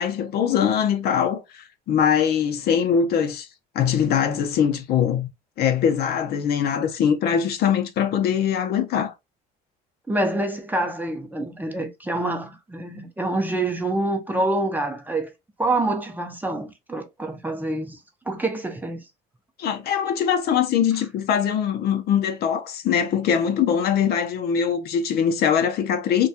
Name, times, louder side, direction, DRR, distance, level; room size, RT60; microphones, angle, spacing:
voice 1, 0.0-3.5 3.7-5.3 5.6-9.1 19.6-26.3, left 8 dB, 60° left, 0.6 m, -22 dB
voice 2, 10.1-15.3 15.6-18.0 18.3-19.0, right 2 dB, 10° right, 0.6 m, -26 dB
2.3 x 2.2 x 2.7 m
supercardioid pair, 90°, 19 cm